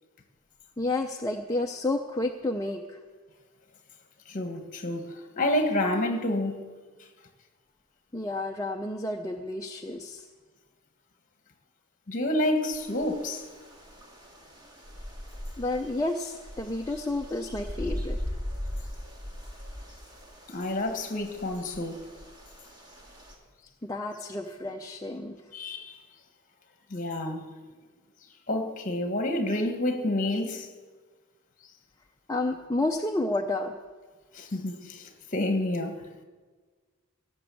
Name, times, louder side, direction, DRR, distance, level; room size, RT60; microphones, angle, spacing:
voice 1, 0.8-3.0 8.1-10.3 15.6-18.2 23.8-25.4 32.3-33.7, left 2 dB, 15° left, 0.5 m, -30 dB
voice 2, 4.3-6.6 12.1-13.4 20.5-22.0 25.5-25.9 26.9-27.5 28.5-30.7 34.3-36.0, left 1 dB, 35° left, 1.5 m, -29 dB
sound 1, 12.7-23.3, equal, 20° right, 1.9 m, -40 dB
17.0 x 7.0 x 7.7 m
head